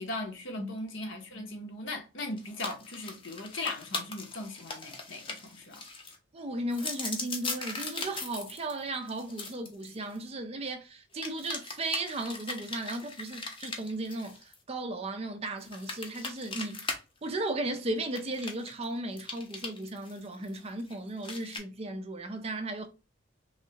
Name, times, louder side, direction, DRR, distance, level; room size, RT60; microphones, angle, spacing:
voice 1, 0.0-5.8, left 2 dB, 60° left, 0.8 m, -38 dB
sound 1, 2.4-6.2 6.7-10.2 11.2-14.5 15.6-17.0 17.3-17.4 18.1-18.8 19.2-20.9 21.2-21.6, left 3 dB, 25° left, 0.6 m, -39 dB
voice 2, 6.3-16.9 17.2-22.9, right 2 dB, 30° right, 0.4 m, -36 dB
3.2 x 2.7 x 2.7 m
head